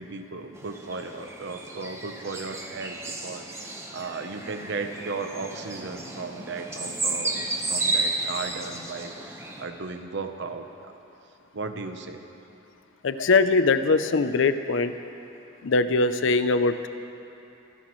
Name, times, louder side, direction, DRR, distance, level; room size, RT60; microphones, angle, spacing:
voice 1, 0.0-10.9 11.5-12.2, right 4 dB, 65° right, 7 dB, 0.9 m, -36 dB
sound 1, 0.6-9.6, right 2 dB, 15° right, 1.1 m, -33 dB
voice 2, 13.0-14.9 15.6-16.9, left 3 dB, 70° left, 11 dB, 0.6 m, -22 dB
26.5 x 11.5 x 3.2 m, 2.9 s
head